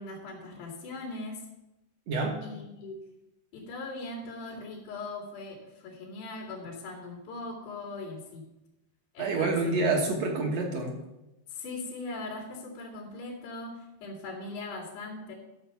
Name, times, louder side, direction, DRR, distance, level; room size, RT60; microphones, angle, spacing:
voice 1, 0.0-1.5 2.4-3.0 3.5-8.5 9.1-9.6 11.5-15.3, left 2 dB, 90° left, -4 dB, 4.6 m, -40 dB
voice 2, 2.1-2.4 9.2-11.0, right 3 dB, 60° right, 1 dB, 1.9 m, -27 dB
13.5 x 5.6 x 7.0 m, 0.95 s
omnidirectional pair, 4.7 m